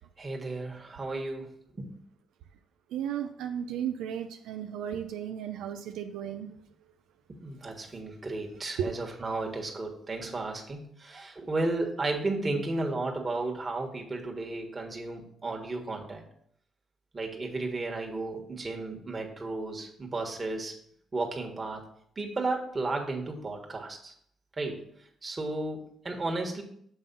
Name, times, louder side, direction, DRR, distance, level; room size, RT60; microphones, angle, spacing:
voice 1, 0.2-2.0 7.4-16.2 17.1-20.8 21.1-21.8 22.1-24.1 24.6-24.9 25.2-26.6, right 2 dB, 30° right, 1 dB, 1.5 m, -33 dB
voice 2, 2.9-6.5 8.8-9.0, right 9 dB, 90° right, 6 dB, 0.4 m, -34 dB
7.1 x 3.6 x 5.4 m, 0.67 s
cardioid pair, 90°, 0 cm